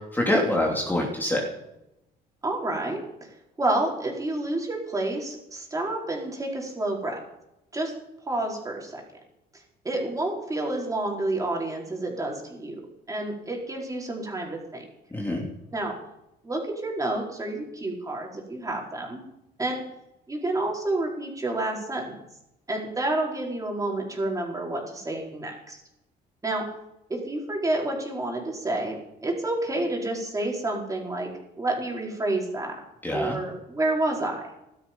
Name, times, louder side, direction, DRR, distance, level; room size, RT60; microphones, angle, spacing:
voice 1, 0.1-1.4 15.1-15.5 33.0-33.4, left 1 dB, 10° left, -1 dB, 2.9 m, -25 dB
voice 2, 2.4-3.0 3.6-7.2 7.7-7.9 8.3-9.0 9.5-12.8 13.1-14.8 15.7-15.9 16.4-19.2 19.6-19.8 20.3-22.2 22.7-25.8 26.4-26.6 27.1-31.3 31.6-32.8 33.1-34.4, right 2 dB, 20° right, -1 dB, 4.8 m, -29 dB
15.0 x 12.5 x 5.5 m, 0.89 s
cardioid pair, 110°, 17 cm